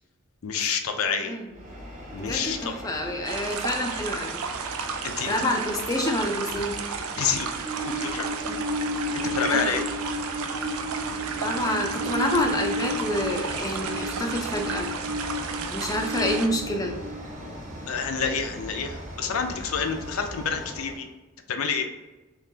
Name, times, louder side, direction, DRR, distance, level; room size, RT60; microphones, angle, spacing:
voice 1, 0.4-1.4 2.1-2.8 5.0-5.4 7.2-7.5 7.9-8.3 9.1-9.8 17.9-21.1 21.5-21.9, left 6 dB, 85° left, 6 dB, 0.5 m, -28 dB
Train, 1.5-21.0, equal, 35° right, 1.0 m, -34 dB
voice 2, 2.2-4.4 5.3-6.7 8.5-8.6 9.5-9.8 11.4-14.9 15.7-16.9, left 1 dB, 15° left, 2 dB, 0.4 m, -28 dB
sound 1, 3.2-16.5, right 5 dB, 90° right, 0.4 m, -33 dB
3.7 x 2.8 x 2.7 m, 1.1 s
head